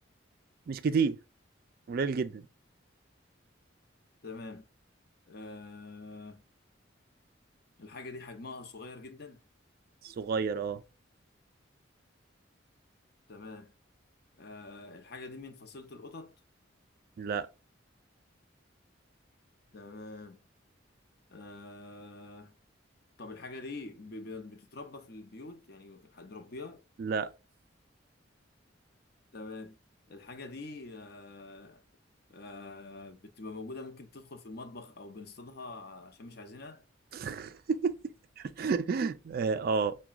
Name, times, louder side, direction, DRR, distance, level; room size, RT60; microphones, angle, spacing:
voice 1, 0.7-1.2 1.9-2.4 10.0-10.8 17.2-17.5 27.0-27.3 37.1-40.0, right 5 dB, 50° right, 0.3 m, -30 dB
voice 2, 4.2-4.7 5.3-6.4 7.8-9.4 13.3-13.7 14.4-16.3 19.7-20.4 21.3-22.5 23.2-26.8 29.3-29.8 30.1-31.8 32.3-36.8, left 3 dB, 55° left, 0.7 m, -45 dB
5.8 x 2.2 x 2.3 m
head